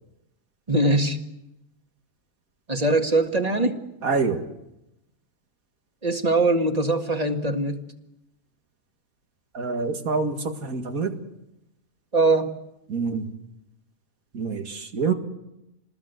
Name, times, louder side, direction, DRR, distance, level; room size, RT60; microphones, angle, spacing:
voice 1, 0.7-1.2 2.7-3.8 6.0-7.8 12.1-12.5 13.1-13.2, right 2 dB, 25° right, 5 dB, 1.9 m, -22 dB
voice 2, 4.0-4.4 9.5-11.2 12.9-13.3 14.3-15.1, right 4 dB, 70° right, 6 dB, 2.4 m, -26 dB
27.0 x 20.5 x 8.1 m, 0.89 s
omnidirectional pair, 1.5 m